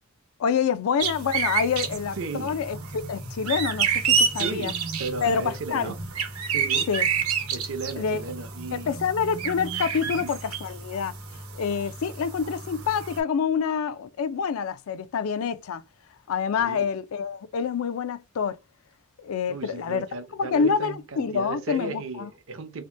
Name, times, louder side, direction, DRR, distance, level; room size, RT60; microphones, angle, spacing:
voice 1, 0.4-4.7 5.2-5.9 6.9-7.1 8.0-8.2 8.7-11.1 11.5-15.8 16.3-18.6 19.2-20.1 20.4-22.3, left 6 dB, 75° left, 0.4 m, -27 dB
sound 1, 1.0-13.2, right 6 dB, 90° right, 0.9 m, -29 dB
voice 2, 2.2-2.5 4.3-6.0 6.5-6.9 7.5-9.0 10.0-10.3 16.6-16.9 19.5-22.9, right 3 dB, 65° right, 0.6 m, -35 dB
2.8 x 2.1 x 3.2 m
head